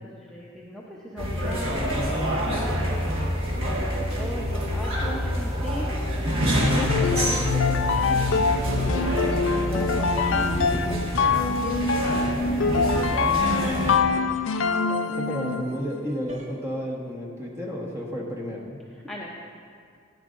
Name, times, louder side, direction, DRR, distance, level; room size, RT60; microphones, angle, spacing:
voice 1, 0.2-0.8 1.1-3.0 3.6-5.9 6.6-8.6 9.5-11.0 11.6-14.3 14.9-15.2 19.1-19.3, equal, 5° left, -5 dB, 0.6 m, -37 dB
sound 1, 1.2-14.0, equal, 80° right, 1.5 m, -27 dB
sound 2, 6.6-15.8, left 4 dB, 75° left, 0.4 m, -24 dB
sound 3, 9.0-9.5 12.7-13.2 16.3-16.6, equal, 35° right, 1.1 m, -45 dB
voice 2, 15.1-18.8, equal, 15° right, -3 dB, 1.2 m, -32 dB
13.0 x 9.6 x 2.5 m, 2.2 s
head